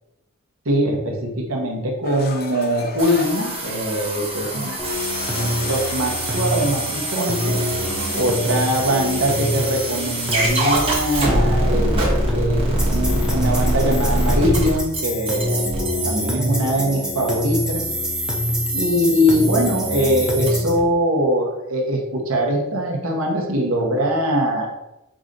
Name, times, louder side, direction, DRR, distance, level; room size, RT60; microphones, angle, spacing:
voice 1, 0.7-4.8 5.3-7.6 8.1-12.0 12.3-15.6 16.0-17.9 18.7-24.8, equal, 80° right, -1 dB, 1.0 m, -22 dB
sound 1, 2.0-8.2, left 3 dB, 45° left, 0.5 m, -34 dB
sound 2, 3.0-20.5, right 1 dB, 25° right, 1.0 m, -25 dB
sound 3, 4.8-20.8, left 1 dB, 5° right, 0.7 m, -26 dB
4.9 x 2.6 x 3.8 m, 0.92 s
head